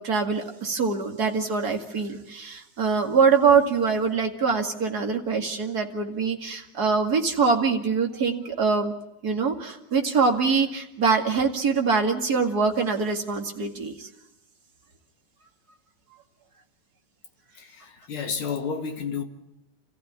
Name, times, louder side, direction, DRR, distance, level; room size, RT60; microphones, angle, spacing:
voice 1, 0.0-8.9 9.2-14.1, right 5 dB, 35° right, 2.4 m, -24 dB
voice 2, 17.6-19.2, left 6 dB, 50° left, 2.7 m, -31 dB
30.0 x 15.0 x 9.7 m
omnidirectional pair, 3.4 m